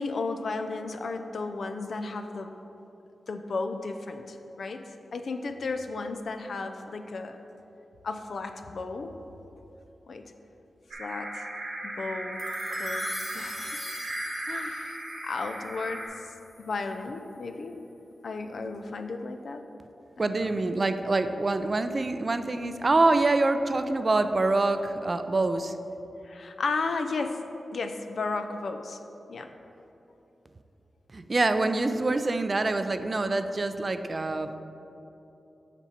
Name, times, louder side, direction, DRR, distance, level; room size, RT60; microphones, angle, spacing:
voice 1, 0.0-2.5 3.3-4.8 5.1-7.4 8.0-9.1 10.1-10.2 11.0-11.4 11.8-12.4 12.7-14.0 14.5-16.0 16.6-17.8 18.2-19.6 20.2-20.3 26.2-27.4 27.7-29.0 29.3-29.5, left 3 dB, 70° left, 7 dB, 0.4 m, -34 dB
sound 1, 10.9-16.1, right 1 dB, 90° right, 1.3 m, -36 dB
sound 2, 12.4-16.9, left 2 dB, 40° left, 1.3 m, -43 dB
voice 2, 20.2-25.7 31.1-34.6, right 2 dB, 40° right, 9 dB, 0.4 m, -25 dB
7.2 x 5.3 x 4.3 m, 3.0 s
wide cardioid pair, 85°, 0 cm